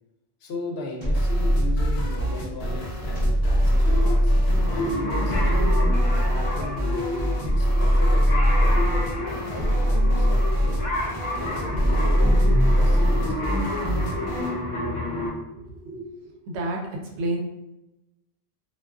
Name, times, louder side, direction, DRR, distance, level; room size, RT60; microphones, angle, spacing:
voice 1, 0.4-4.3 4.7-5.6 6.3-8.8 9.2-10.8 11.4-13.5, left 2 dB, 75° left, 0 dB, 0.8 m, -37 dB
sound 1, 1.0-2.3 3.2-4.8 5.3-6.7 7.4-9.0 9.6-11.0 11.7-13.3, equal, 30° right, 0.8 m, -21 dB
sound 2, 1.1-14.6, equal, 60° left, 0.4 m, -31 dB
sound 3, 3.7-15.3, left 1 dB, 30° left, 0.9 m, -30 dB
voice 2, 15.6-16.8 17.2-17.4, right 2 dB, 85° right, 1 dB, 0.9 m, -30 dB
2.3 x 2.3 x 2.3 m, 0.95 s
omnidirectional pair, 1.1 m